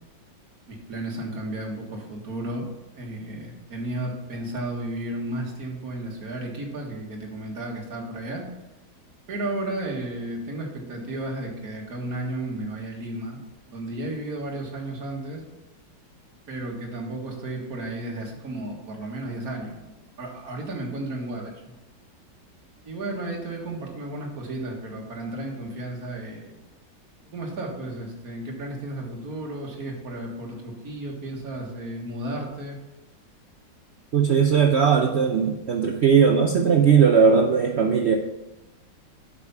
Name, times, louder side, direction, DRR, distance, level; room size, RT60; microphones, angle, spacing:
voice 1, 0.7-2.7 2.9-8.5 9.3-13.4 13.7-15.4 16.5-21.7 22.8-26.5 27.2-32.8, right 1 dB, 55° right, 0 dB, 2.1 m, -33 dB
voice 2, 34.1-38.2, right 6 dB, 90° right, 4 dB, 0.5 m, -18 dB
8.2 x 5.8 x 5.6 m, 1.1 s
omnidirectional pair, 2.0 m